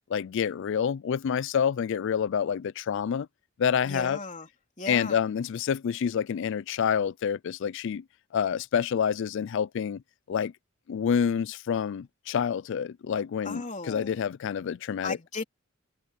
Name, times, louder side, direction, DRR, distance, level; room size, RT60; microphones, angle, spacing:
voice 1, 0.1-3.3 3.6-4.2 4.9-8.0 8.3-10.0 10.3-10.5 10.9-15.2, left 7 dB, 55° left, 0.3 m, -28 dB
voice 2, 3.9-4.5 4.8-5.2 13.4-14.2 15.0-15.4, left 3 dB, 35° left, 3.6 m, -36 dB
head